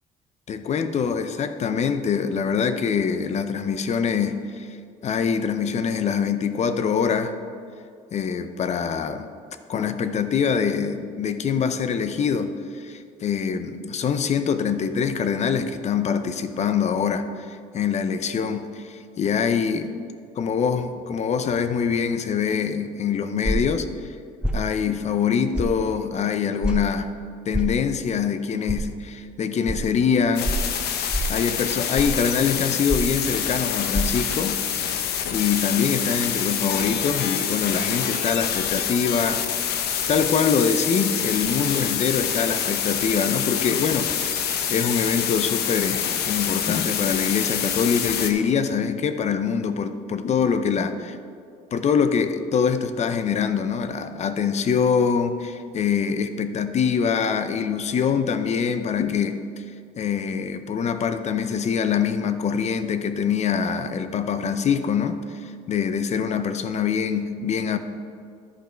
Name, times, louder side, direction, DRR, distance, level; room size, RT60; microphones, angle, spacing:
voice 1, 0.5-4.8 5.0-7.3 8.1-9.3 9.7-19.9 20.4-23.9 24.5-27.1 27.5-30.5 31.3-34.6 35.3-39.8 40.1-44.1 44.7-51.2 51.7-59.6 60.0-67.8, left 6 dB, 40° left, 10 dB, 0.6 m, -24 dB
sound 1, 23.4-23.8 24.4-24.6 25.5-25.7 26.6-26.8 27.5-27.7 28.7-28.8 29.6-29.8 30.4-30.7 31.1-31.4 31.9-32.2 32.9-33.2 33.9-34.0, equal, 5° right, 0.6 m, -25 dB
sound 2, 30.4-48.3, left 8 dB, 75° left, 0.8 m, -26 dB
11.5 x 5.2 x 4.5 m, 2.3 s
cardioid pair, 110°, 17 cm